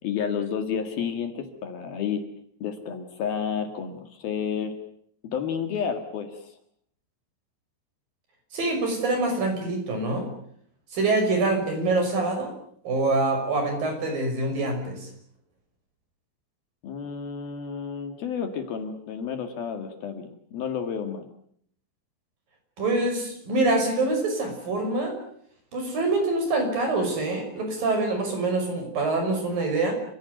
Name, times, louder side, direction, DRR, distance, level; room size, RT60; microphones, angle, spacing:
voice 1, 0.0-2.2 2.6-4.7 5.2-6.5 16.8-21.3, left 7 dB, 60° left, 7 dB, 3.5 m, -31 dB
voice 2, 8.5-10.3 10.9-12.5 12.8-15.1 22.8-25.2 25.7-29.9, right 2 dB, 50° right, 5 dB, 7.2 m, -25 dB
29.0 x 16.5 x 9.3 m, 0.66 s
omnidirectional pair, 5.2 m